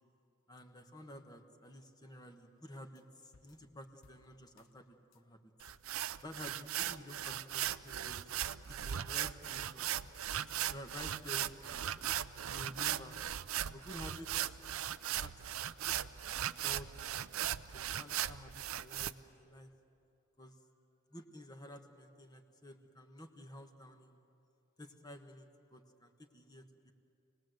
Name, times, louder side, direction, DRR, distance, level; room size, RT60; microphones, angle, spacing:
voice 1, 0.5-5.4 6.2-9.9 10.5-12.0 12.5-13.2 13.7-14.3 15.2-16.1 16.6-17.3 17.7-19.7 20.4-20.6 21.1-24.2 24.8-26.9, left 1 dB, 20° left, 5 dB, 1.4 m, -52 dB
sound 1, 3.0-3.1 3.3-4.7 5.1-5.2 5.7-6.3 6.8-6.9 7.3-7.4 7.7-9.1 9.5-9.6 10.1-10.7 11.1-11.3 11.7-11.8 12.0-13.4 13.8-13.9 14.4-15.0 15.5-15.6 16.0-16.1 16.4-17.8 18.2-18.3 18.8-19.1, left 3 dB, 80° left, 1.2 m, -66 dB
sound 2, 5.6-19.1, right 11 dB, 90° right, 0.6 m, -38 dB
28.5 x 20.0 x 7.9 m, 2.7 s
head